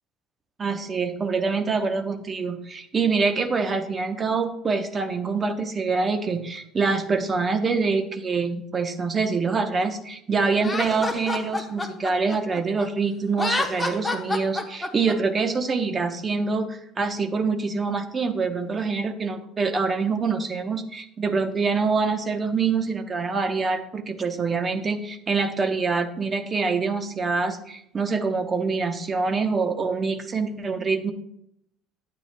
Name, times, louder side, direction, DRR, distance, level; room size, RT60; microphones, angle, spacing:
voice 1, 0.6-31.1, right 4 dB, 20° right, 6 dB, 0.8 m, -25 dB
Laughter, 10.6-12.9 13.3-15.1, left 2 dB, 10° left, 0.9 m, -28 dB
12.0 x 8.9 x 2.2 m, 0.74 s
cardioid pair, 155°, 0 cm